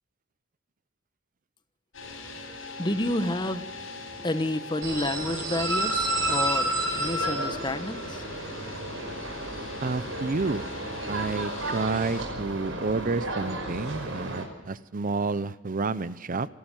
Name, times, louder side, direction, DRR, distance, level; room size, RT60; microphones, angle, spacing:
sound 1, 1.9-12.2, left 3 dB, 80° left, 6.3 m, -42 dB
voice 1, 2.8-3.6 4.2-8.2, left 1 dB, 25° left, 10 dB, 1.1 m, -30 dB
sound 2, 4.8-14.4, right 1 dB, 90° right, 5.4 m, -31 dB
voice 2, 9.8-10.6 11.0-16.5, right 3 dB, 45° right, 15 dB, 0.6 m, -30 dB
27.0 x 12.0 x 9.1 m, 1.1 s
head